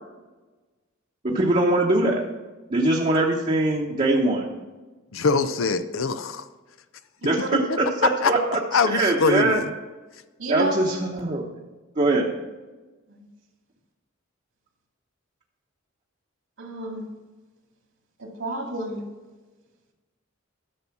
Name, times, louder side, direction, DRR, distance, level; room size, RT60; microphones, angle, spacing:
voice 1, 1.2-2.2 2.7-4.5 7.2-9.6 10.5-11.4 12.0-12.3, right 2 dB, 35° right, 1.0 m, -22 dB
voice 2, 5.1-6.5 7.7-7.8 8.2-8.3 8.7-9.7, left 4 dB, 75° left, 0.6 m, -23 dB
voice 3, 10.4-10.7 16.6-17.0 18.2-19.0, right 2 dB, 75° right, 2.5 m, -30 dB
12.0 x 6.9 x 6.0 m
head